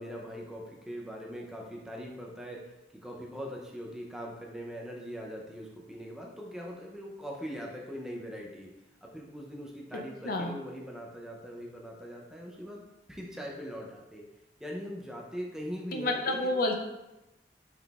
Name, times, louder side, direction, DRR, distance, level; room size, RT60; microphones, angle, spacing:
voice 1, 0.0-8.7 9.0-12.8 13.1-14.3 14.6-16.6, equal, 5° right, -2 dB, 0.5 m, -41 dB
voice 2, 15.9-16.8, left 2 dB, 55° left, 3 dB, 0.5 m, -29 dB
5.6 x 3.6 x 2.4 m, 0.97 s
head